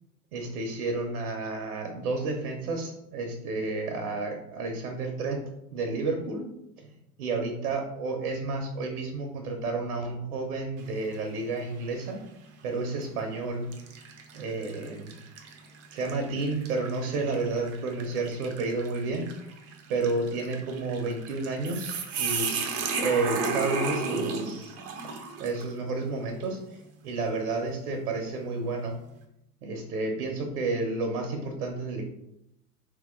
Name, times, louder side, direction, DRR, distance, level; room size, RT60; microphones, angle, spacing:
voice 1, 0.3-5.4 5.7-6.5 7.2-12.2 12.6-13.7 14.3-15.1 15.9-19.3 19.9-25.1 25.4-26.6 27.0-28.9 29.6-32.0, right 3 dB, 80° right, 4 dB, 0.9 m, -31 dB
sound 1, 10.8-11.3 11.8-11.9 12.9-13.1 13.7-25.7, right 5 dB, 35° right, 0.6 m, -35 dB
3.2 x 2.9 x 3.7 m, 0.82 s
hypercardioid pair, 95°, 44 cm